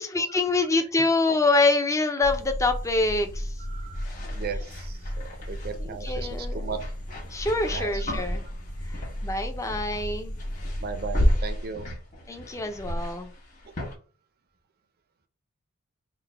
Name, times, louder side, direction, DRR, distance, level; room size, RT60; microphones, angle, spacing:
voice 1, 0.0-3.6 4.5-4.6 5.8-6.8 7.2-8.4 8.9-10.3 12.3-13.3, left 2 dB, 15° left, 6 dB, 0.5 m, -26 dB
sound 1, 2.2-11.4, equal, 85° left, 1.5 m, -35 dB
voice 2, 3.6-4.1 4.3-6.8 7.7-8.2 10.8-11.9, right 5 dB, 45° right, 9 dB, 0.5 m, -37 dB
sound 2, 3.9-5.7 6.7-9.4 9.7-10.0 10.3-13.9, equal, 35° left, 1.4 m, -32 dB
3.8 x 2.1 x 4.5 m, 0.39 s
head